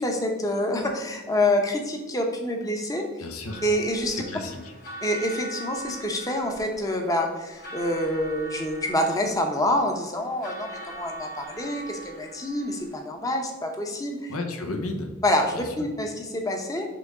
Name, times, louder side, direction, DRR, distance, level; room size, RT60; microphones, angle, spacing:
voice 1, 0.0-3.1 3.6-4.2 5.0-14.3 15.2-16.9, left 1 dB, 15° left, 2 dB, 0.8 m, -27 dB
voice 2, 3.2-3.6 4.1-4.7 14.3-15.1 15.5-15.9, left 2 dB, 75° left, 4 dB, 1.0 m, -33 dB
sound 1, 3.5-13.0, right 2 dB, 40° left, 1.5 m, -42 dB
6.1 x 3.6 x 4.9 m, 1.2 s
head